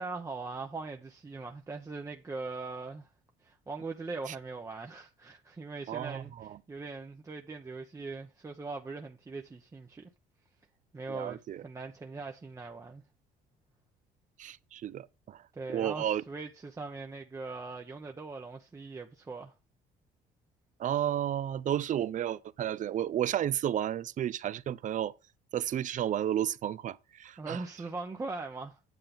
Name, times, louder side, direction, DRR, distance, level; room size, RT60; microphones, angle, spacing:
voice 1, 0.0-3.1 3.4-10.1 10.9-13.0 15.5-19.5 27.4-28.8, right 3 dB, 20° right, 0.8 m, -41 dB
voice 2, 5.9-6.6 11.1-11.6 14.4-15.4 15.7-16.2 20.8-25.1 25.5-27.6, right 11 dB, 50° right, 0.6 m, -32 dB
9.1 x 7.5 x 3.6 m
cardioid pair, 110°, 17 cm